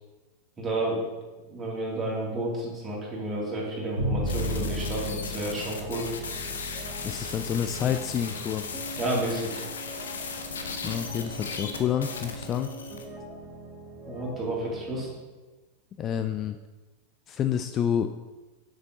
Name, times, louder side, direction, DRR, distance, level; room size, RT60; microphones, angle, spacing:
voice 1, 0.6-1.0 1.4-6.1 9.0-9.6 14.1-15.1, right 1 dB, 20° right, -4 dB, 2.7 m, -31 dB
Bowed string instrument, 4.0-10.1, equal, 85° left, 2.7 m, -35 dB
sound 1, 4.0-15.1, right 1 dB, ahead, 2.0 m, -43 dB
sound 2, 4.3-13.1, left 5 dB, 65° left, 0.8 m, -37 dB
voice 2, 7.0-8.6 10.8-12.7 16.0-16.6 17.3-18.1, left 9 dB, 30° left, 8 dB, 0.3 m, -28 dB
6.9 x 6.5 x 3.9 m, 1.2 s
figure-of-eight pair, 90°, 0 cm